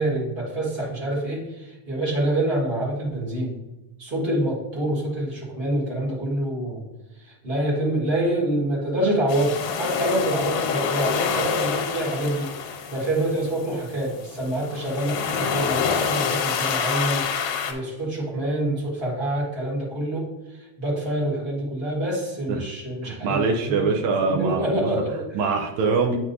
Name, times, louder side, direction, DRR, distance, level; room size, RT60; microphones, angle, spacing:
voice 1, 0.0-3.6 4.0-6.8 7.1-23.9 24.2-25.4, right 1 dB, 75° right, -6 dB, 0.5 m, -26 dB
sound 1, 9.3-17.7, left 6 dB, 90° left, 2.6 m, -27 dB
voice 2, 23.0-24.9 25.3-26.2, right 4 dB, 90° right, 2 dB, 1.6 m, -23 dB
8.2 x 5.9 x 2.6 m, 1.0 s
omnidirectional pair, 4.1 m